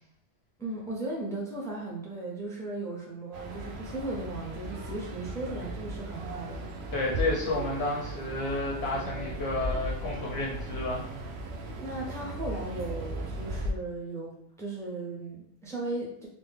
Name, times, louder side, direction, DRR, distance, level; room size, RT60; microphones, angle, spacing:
voice 1, 0.6-6.7 11.8-16.3, right 2 dB, 5° left, -4 dB, 0.4 m, -36 dB
sound 1, 3.3-13.7, right 1 dB, 65° right, 0.7 m, -37 dB
voice 2, 6.9-11.1, left 2 dB, 60° left, -3 dB, 0.8 m, -31 dB
3.4 x 2.1 x 3.3 m, 0.70 s
omnidirectional pair, 1.4 m